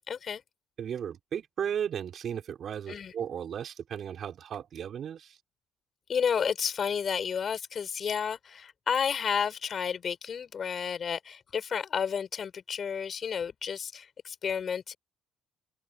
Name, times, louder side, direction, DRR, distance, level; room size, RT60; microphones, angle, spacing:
voice 1, 0.1-0.4 2.9-3.1 6.1-14.9, left 7 dB, 45° left, 5.3 m, -31 dB
voice 2, 0.8-5.4, right 8 dB, 55° right, 5.5 m, -35 dB
open air
supercardioid pair, 90°, 0 cm